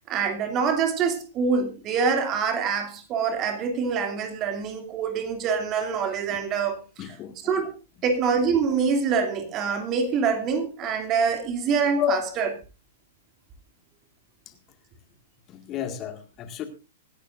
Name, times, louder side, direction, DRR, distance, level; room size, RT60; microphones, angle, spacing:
voice 1, 0.1-7.1 7.4-7.7 8.0-12.5, right 5 dB, 30° right, 2.7 m, -25 dB
voice 2, 7.0-7.3 12.0-12.3 15.5-16.7, left 10 dB, 30° left, 1.9 m, -30 dB
24.5 x 11.5 x 2.5 m
figure-of-eight pair, 105°, 0 cm